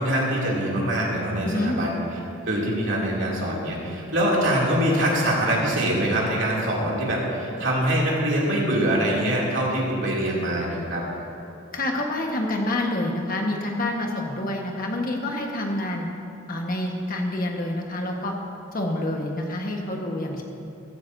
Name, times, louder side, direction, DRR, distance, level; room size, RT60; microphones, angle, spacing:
voice 1, 0.0-2.0 2.5-11.1, right 1 dB, 65° right, -4 dB, 2.8 m, -24 dB
voice 2, 1.4-1.8 11.7-16.1 16.5-18.3 18.7-20.4, left 1 dB, 45° left, 1 dB, 1.4 m, -27 dB
15.5 x 15.0 x 2.7 m, 2.7 s
head